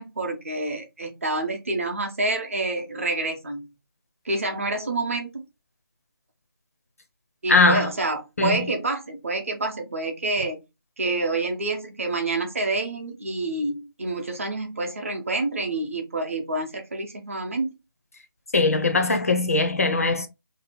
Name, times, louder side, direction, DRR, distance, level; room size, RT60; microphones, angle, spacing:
voice 1, 0.0-3.7 4.2-5.4 7.4-10.6 11.0-17.7, right 2 dB, 35° right, 0.7 m, -28 dB
voice 2, 7.5-7.9 8.4-8.6 18.5-20.3, left 3 dB, 40° left, 0.5 m, -20 dB
2.7 x 2.4 x 4.1 m
figure-of-eight pair, 170°, 13 cm